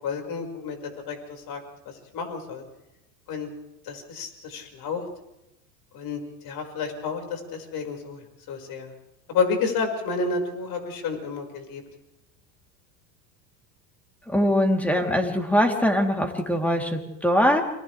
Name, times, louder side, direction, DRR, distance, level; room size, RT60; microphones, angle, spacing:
voice 1, 0.0-1.6 2.1-2.6 3.3-3.5 3.8-5.0 5.9-8.2 8.5-8.9 9.3-11.8, left 4 dB, 45° left, 3 dB, 5.6 m, -30 dB
voice 2, 14.3-17.6, equal, 5° left, 2 dB, 3.4 m, -22 dB
29.5 x 26.5 x 3.4 m, 0.92 s
hypercardioid pair, 100°, 50 cm